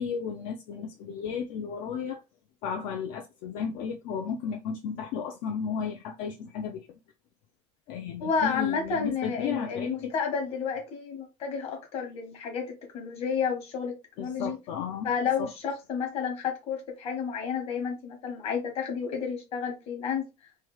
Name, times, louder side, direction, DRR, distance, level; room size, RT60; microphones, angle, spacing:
voice 1, 0.0-2.2 2.6-6.9 7.9-10.1 14.2-15.1 15.4-15.5, left 7 dB, 65° left, 0.5 m, -34 dB
voice 2, 8.2-14.6 15.0-20.3, left 6 dB, 40° left, 1.1 m, -31 dB
3.2 x 2.3 x 3.0 m
cardioid pair, 165°, 15 cm